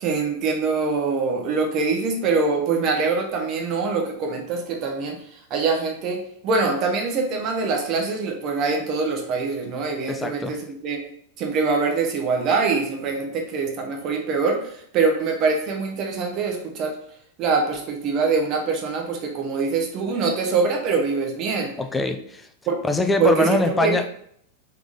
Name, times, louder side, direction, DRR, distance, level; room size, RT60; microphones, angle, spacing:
voice 1, 0.0-11.0 11.4-17.0 17.4-21.7 22.7-22.8 23.2-24.1, right 4 dB, 35° right, 2 dB, 0.9 m, -24 dB
voice 2, 10.1-10.6 21.8-22.5 22.8-24.0, left 2 dB, 10° left, 7 dB, 0.5 m, -23 dB
3.6 x 3.4 x 3.9 m, 0.67 s
figure-of-eight pair, 90°, 0 cm